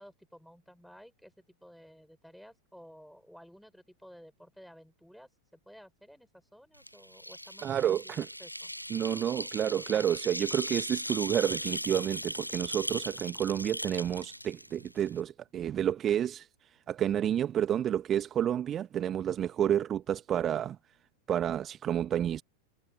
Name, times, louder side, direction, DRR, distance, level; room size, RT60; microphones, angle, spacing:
voice 1, 0.0-8.7, equal, ahead, 6.9 m, -54 dB
sound 1, 6.8-15.2, equal, 90° left, 0.5 m, -38 dB
voice 2, 7.6-8.3 8.9-21.0 21.3-22.4, right 10 dB, 25° right, 1.4 m, -30 dB
figure-of-eight pair, 90°, 0 cm